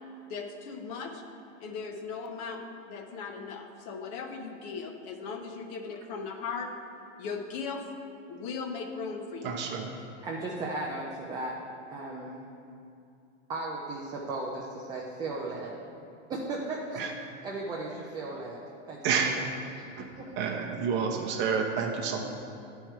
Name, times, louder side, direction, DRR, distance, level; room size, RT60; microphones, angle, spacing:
voice 1, 0.3-1.2 1.6-6.8 7.2-7.9 8.3-9.6, left 5 dB, 40° left, 4 dB, 0.7 m, -38 dB
voice 2, 9.4-9.9 17.0-17.1 19.0-19.4 20.0-20.1 20.4-22.2, right 6 dB, 30° right, 3 dB, 0.7 m, -29 dB
voice 3, 10.2-11.5 11.9-12.4 13.5-15.7 16.3-18.6 18.9-19.4 19.7-19.8 20.2-20.3, right 2 dB, 10° right, -3 dB, 0.3 m, -36 dB
9.7 x 4.5 x 4.6 m, 2.5 s
hypercardioid pair, 130°, 37 cm